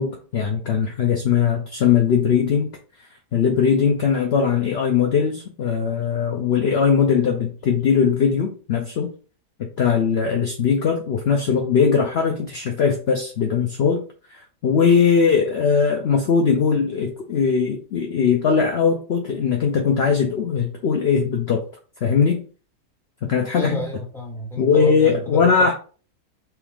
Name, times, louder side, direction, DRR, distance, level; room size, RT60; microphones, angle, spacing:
voice 1, 0.0-2.7 3.3-9.1 9.6-14.0 14.3-21.6 22.0-22.4 23.2-23.8 24.6-25.7, left 6 dB, 65° left, 3 dB, 0.6 m, -20 dB
voice 2, 23.5-25.7, left 1 dB, ahead, -2 dB, 1.2 m, -31 dB
5.9 x 2.4 x 3.4 m, 0.38 s
omnidirectional pair, 1.8 m